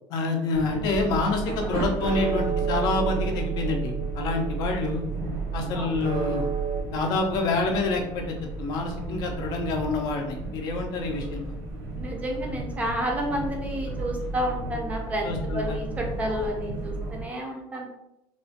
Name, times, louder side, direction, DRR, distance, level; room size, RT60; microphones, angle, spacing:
voice 1, 0.1-5.0 5.5-6.5 6.9-11.6 15.2-15.8, left 3 dB, 50° left, 3 dB, 0.5 m, -27 dB
sound 1, 0.5-17.2, right 2 dB, 90° right, 0.9 m, -35 dB
sound 2, 0.9-6.8, right 6 dB, 65° right, 0.6 m, -30 dB
voice 2, 12.0-15.3 15.5-17.9, equal, 15° right, 0 dB, 0.4 m, -30 dB
3.0 x 2.1 x 2.7 m, 0.87 s
cardioid pair, 175°, 9 cm